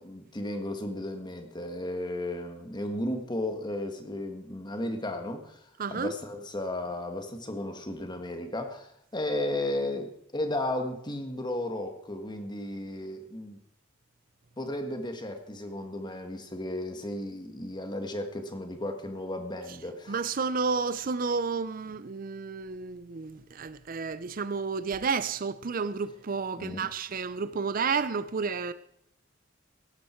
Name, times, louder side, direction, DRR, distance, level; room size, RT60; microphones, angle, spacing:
voice 1, 0.0-13.6 14.6-20.1 26.6-26.8, left 1 dB, 25° left, 1.7 m, -34 dB
voice 2, 5.8-6.1 20.1-28.7, right 5 dB, 45° right, 0.6 m, -31 dB
17.0 x 13.0 x 4.5 m
head